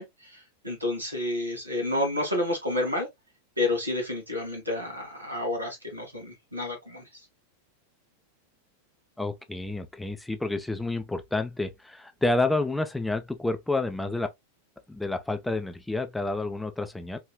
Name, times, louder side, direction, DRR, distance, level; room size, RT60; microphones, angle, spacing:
voice 1, 0.0-3.1 3.6-7.3, left 1 dB, 85° right, 2.0 m, -30 dB
voice 2, 9.2-14.3 14.9-17.2, left 2 dB, 5° left, 0.5 m, -29 dB
4.7 x 3.1 x 2.2 m
figure-of-eight pair, 90°, 0 cm